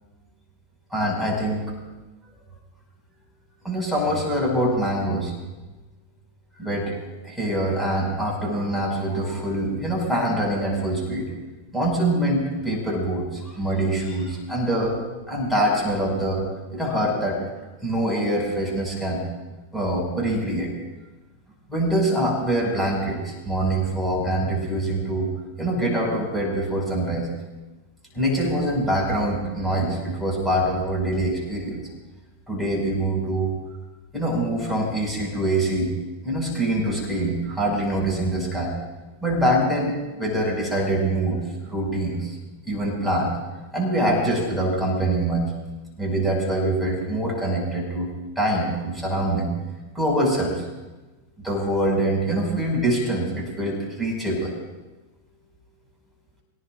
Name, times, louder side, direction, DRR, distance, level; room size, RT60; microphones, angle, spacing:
voice 1, 0.9-1.7 3.6-5.3 6.6-7.0 7.2-11.3 11.7-15.0 15.3-16.4 16.7-17.4 17.8-19.2 19.7-20.7 21.7-25.3 25.6-27.3 28.1-31.8 32.5-33.5 34.1-35.9 36.2-38.7 39.2-42.4 42.7-43.3 43.7-45.4 46.0-48.1 48.4-49.5 49.9-50.6 51.4-54.6, right 1 dB, ahead, -3 dB, 6.1 m, -24 dB
24.5 x 18.0 x 2.6 m, 1.2 s
figure-of-eight pair, 90°, 0 cm